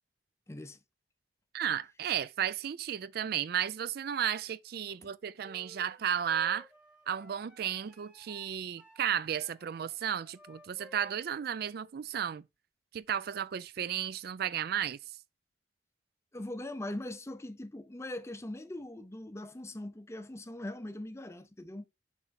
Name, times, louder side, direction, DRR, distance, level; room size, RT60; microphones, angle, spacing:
voice 1, 0.5-0.8 5.0-5.1 16.3-21.8, left 1 dB, 15° left, 0.6 m, -41 dB
voice 2, 1.5-6.7 7.1-12.4 12.9-15.0, right 9 dB, 55° right, 0.3 m, -33 dB
sound 1, 5.4-11.9, equal, 5° right, 1.2 m, -57 dB
7.1 x 4.4 x 4.1 m
head